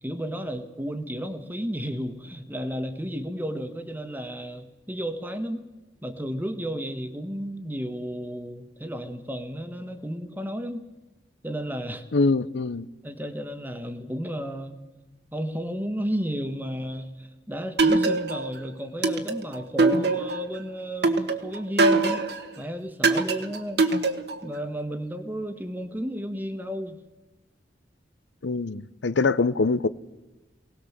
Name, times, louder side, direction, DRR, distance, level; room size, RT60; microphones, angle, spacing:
voice 1, 0.0-5.6 6.0-10.8 11.4-12.0 13.0-14.8 15.3-22.2 22.6-23.8 24.4-27.0, equal, 10° right, 1.5 m, -33 dB
voice 2, 12.1-12.9 28.4-29.9, left 3 dB, 85° left, 0.7 m, -23 dB
sound 1, 17.8-18.5 19.0-20.5 21.0-22.4 23.0-24.5, right 3 dB, 65° right, 1.6 m, -22 dB
23.5 x 18.5 x 7.4 m
head